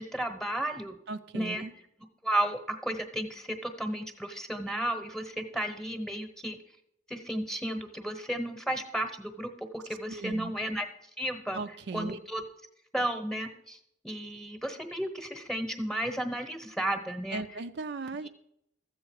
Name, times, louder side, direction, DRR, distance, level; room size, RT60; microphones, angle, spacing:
voice 1, 0.0-1.0 1.3-1.6 2.2-6.6 7.1-10.9 11.2-11.6 11.9-12.4 12.9-13.8 14.0-17.4, right 1 dB, 5° left, 7 dB, 1.0 m, -33 dB
voice 2, 1.1-1.7 10.1-10.5 11.5-12.2 17.3-18.3, right 3 dB, 65° right, 9 dB, 0.5 m, -37 dB
14.0 x 7.7 x 4.7 m, 0.76 s
head